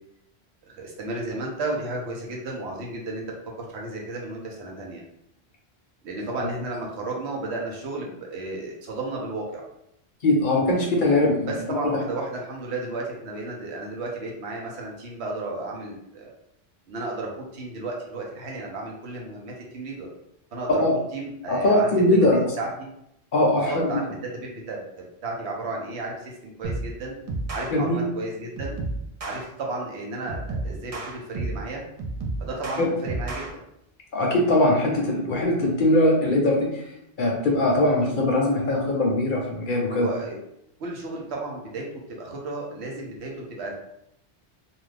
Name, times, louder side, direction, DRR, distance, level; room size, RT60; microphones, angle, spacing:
voice 1, 0.7-3.3 3.6-5.0 6.0-9.6 11.5-16.4 16.9-20.1 20.5-20.8 21.1-21.9 22.3-22.9 23.6-24.1 24.3-27.2 27.5-28.8 29.2-31.8 32.4-33.6 39.9-40.4 40.8-43.8, right 2 dB, 80° right, -1 dB, 1.0 m, -33 dB
voice 2, 10.2-11.5 11.8-12.0 20.7-21.0 21.5-22.5 23.3-24.0 27.7-28.1 32.8-32.9 34.1-36.8 37.2-40.1, left 1 dB, 55° left, -1 dB, 0.7 m, -21 dB
sound 1, 26.6-26.9 27.3-27.7 28.6-29.4 30.3-31.7 32.0-33.5, right 2 dB, 50° right, 0.4 m, -31 dB
2.5 x 2.3 x 3.2 m, 0.79 s
omnidirectional pair, 1.1 m